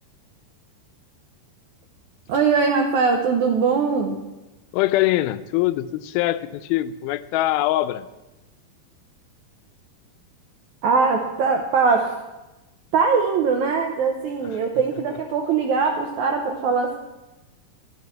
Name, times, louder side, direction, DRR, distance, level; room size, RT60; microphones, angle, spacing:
voice 1, 2.3-4.2 10.8-12.1 12.9-17.0, right 5 dB, 85° right, 2 dB, 1.6 m, -21 dB
voice 2, 4.7-8.1, left 15 dB, 80° left, 12 dB, 2.3 m, -23 dB
12.5 x 6.1 x 7.3 m, 1.0 s
omnidirectional pair, 4.4 m